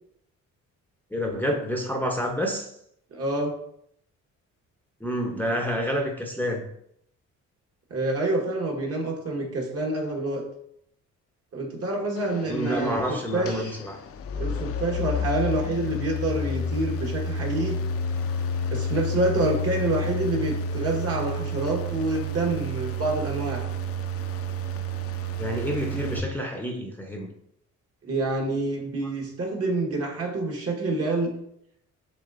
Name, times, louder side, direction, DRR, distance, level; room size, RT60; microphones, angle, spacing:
voice 1, 1.1-2.7 5.0-6.6 12.5-14.0 25.4-27.3, equal, 5° left, 1 dB, 0.6 m, -28 dB
voice 2, 3.1-3.5 7.9-10.4 11.5-13.8 14.3-17.8 18.7-23.7 28.0-31.3, right 2 dB, 50° right, 0 dB, 1.3 m, -27 dB
sound 1, 12.2-26.2, left 1 dB, 50° left, 0.4 m, -30 dB
6.6 x 3.1 x 2.4 m, 0.73 s
cardioid pair, 90°, 30 cm